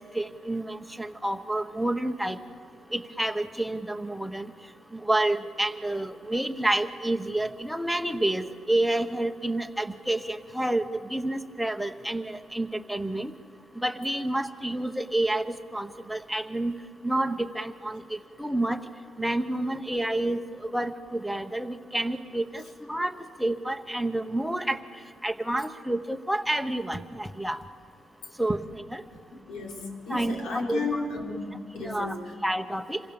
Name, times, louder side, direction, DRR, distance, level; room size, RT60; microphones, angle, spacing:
voice 1, 0.0-2.4 2.9-4.5 4.9-13.3 13.8-16.7 17.0-18.8 19.2-22.6 22.9-23.1 23.4-24.8 25.2-27.6 28.4-29.0 30.1-31.0 31.8-32.1 32.4-33.0, right 1 dB, ahead, 6 dB, 0.9 m, -29 dB
voice 2, 29.1-32.3, left 3 dB, 75° left, 0 dB, 4.6 m, -34 dB
27.0 x 22.0 x 7.0 m, 2.4 s
cardioid pair, 170°, 0 cm